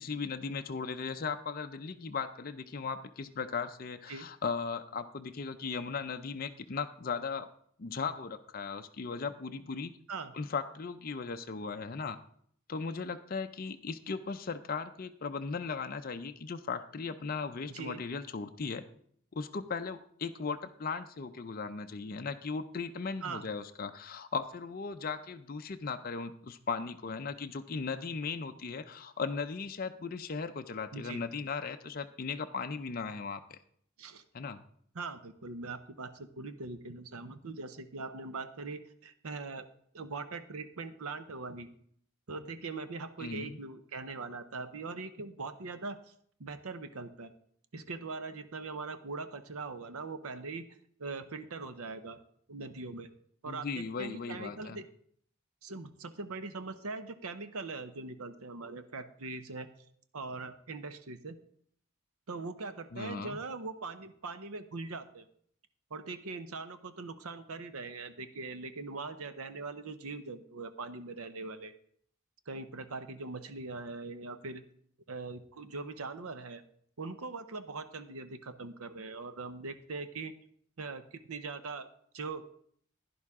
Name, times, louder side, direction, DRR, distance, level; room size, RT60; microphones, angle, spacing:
voice 1, 0.0-7.5 7.8-9.9 10.3-12.2 12.7-18.8 19.3-33.6 34.3-34.6 43.2-43.6 53.5-54.8 62.9-63.4, left 5 dB, 40° left, 7 dB, 0.5 m, -37 dB
voice 2, 17.7-18.0 23.2-23.5 30.9-31.2 34.0-34.2 34.9-39.7 39.9-41.7 42.3-46.1 46.4-47.3 47.7-50.7 51.0-52.2 52.5-53.1 53.4-54.9 55.6-59.7 60.1-61.4 62.3-65.3 65.9-71.7 72.5-74.6 75.1-76.6 77.0-80.3 80.8-81.9 82.1-82.4, right 3 dB, 85° right, 11 dB, 0.8 m, -41 dB
11.0 x 10.0 x 3.6 m, 0.64 s
head